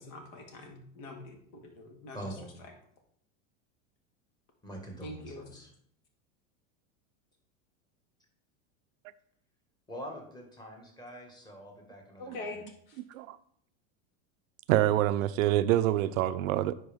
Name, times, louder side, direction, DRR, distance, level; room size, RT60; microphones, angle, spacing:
voice 1, 0.0-2.7 5.0-5.5 12.2-13.0, left 2 dB, 60° left, 3 dB, 2.0 m, -44 dB
voice 2, 2.1-2.5 4.6-5.7 9.9-12.5, right 1 dB, 10° left, 1 dB, 1.7 m, -44 dB
voice 3, 13.0-13.4 14.7-16.7, right 13 dB, 85° right, 13 dB, 0.6 m, -26 dB
10.0 x 4.6 x 3.6 m, 0.67 s
supercardioid pair, 130°, 39 cm